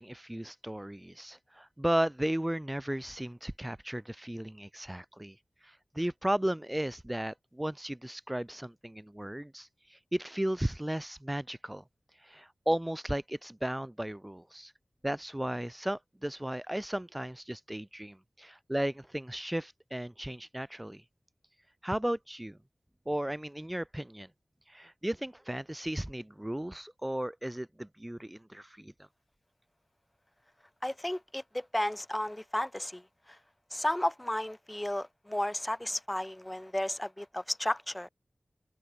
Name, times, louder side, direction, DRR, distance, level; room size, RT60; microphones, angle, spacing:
voice 1, 0.0-5.4 5.6-11.8 12.2-14.7 15.0-21.0 21.8-22.6 23.1-24.3 24.7-28.9, right 1 dB, 15° right, 4.4 m, -35 dB
voice 2, 30.8-33.0 33.7-38.1, left 1 dB, 15° left, 5.0 m, -33 dB
wide cardioid pair, 65°, 0 cm